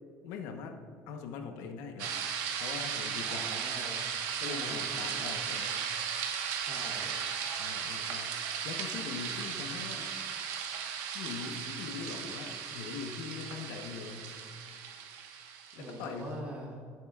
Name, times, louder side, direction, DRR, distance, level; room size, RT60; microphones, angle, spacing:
voice 1, 0.2-0.8 1.1-2.2 2.6-3.5 4.4-5.7 7.6-10.2 11.1-14.3 15.7-16.4, left 5 dB, 90° left, 5 dB, 1.0 m, -42 dB
sound 1, 2.0-16.1, right 7 dB, 90° right, 1.2 m, -36 dB
voice 2, 3.3-4.0 4.5-5.4 6.6-7.2 15.8-16.9, right 1 dB, 20° right, -5 dB, 2.5 m, -44 dB
15.5 x 7.8 x 2.4 m, 2.2 s
cardioid pair, 165°, 6 cm